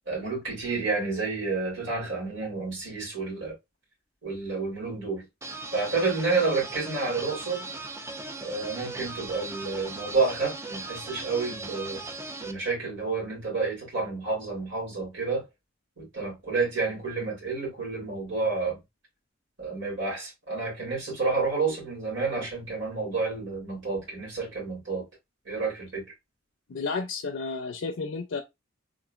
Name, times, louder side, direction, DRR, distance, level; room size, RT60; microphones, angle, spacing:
voice 1, 0.1-3.5 4.2-5.3 5.7-7.6 8.4-12.0 12.4-15.5 16.0-18.8 19.6-25.1 25.5-26.0, right 4 dB, 70° right, 2.3 m, -30 dB
sound 1, 5.4-12.5, right 3 dB, 15° right, 0.4 m, -38 dB
voice 2, 26.7-28.4, left 4 dB, 70° left, 0.4 m, -32 dB
3.7 x 3.0 x 2.3 m
head